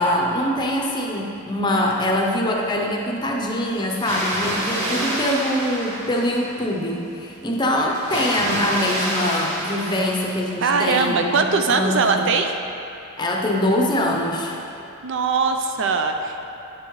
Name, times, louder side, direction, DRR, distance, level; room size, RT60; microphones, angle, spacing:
voice 1, 0.0-12.3 13.2-14.6, left 1 dB, 20° left, -1 dB, 0.6 m, -23 dB
Water, 3.9-6.7 7.9-10.8, right 1 dB, 80° right, 1.6 m, -28 dB
voice 2, 4.6-5.1 10.6-12.5 15.0-16.4, right 4 dB, 55° right, 5 dB, 0.4 m, -21 dB
9.3 x 7.0 x 3.1 m, 2.8 s
head